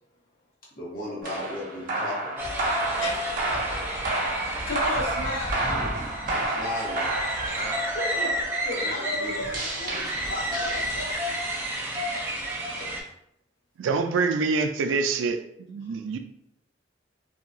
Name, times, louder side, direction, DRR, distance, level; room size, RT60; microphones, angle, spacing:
voice 1, 0.8-2.5 6.3-7.0 8.8-9.4, left 1 dB, 50° left, -5 dB, 1.1 m, -35 dB
sound 1, 1.2-11.4, right 2 dB, 50° right, 0.6 m, -31 dB
sound 2, 2.4-13.0, equal, 15° right, 0.5 m, -31 dB
voice 2, 3.0-3.3 3.7-4.0 4.7-5.6 7.4-11.3 12.5-12.9 15.9-16.0, left 1 dB, 85° left, -5 dB, 1.1 m, -34 dB
voice 3, 13.8-15.4 15.7-16.2, right 4 dB, 80° right, 7 dB, 0.3 m, -25 dB
2.7 x 2.3 x 2.5 m, 0.76 s
head